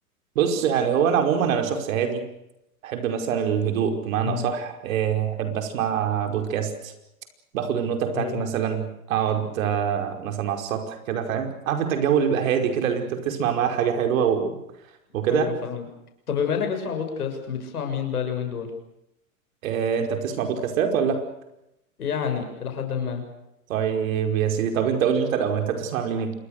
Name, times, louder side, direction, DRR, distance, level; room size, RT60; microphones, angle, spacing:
voice 1, 0.4-2.2 2.8-6.9 7.5-14.5 15.1-15.5 19.6-21.2 23.7-26.3, right 8 dB, 65° right, 5 dB, 5.3 m, -24 dB
voice 2, 15.1-15.9 16.3-18.7 22.0-23.2, left 7 dB, 85° left, 5 dB, 7.0 m, -28 dB
27.0 x 22.0 x 6.6 m, 0.85 s
hypercardioid pair, 115°, 44 cm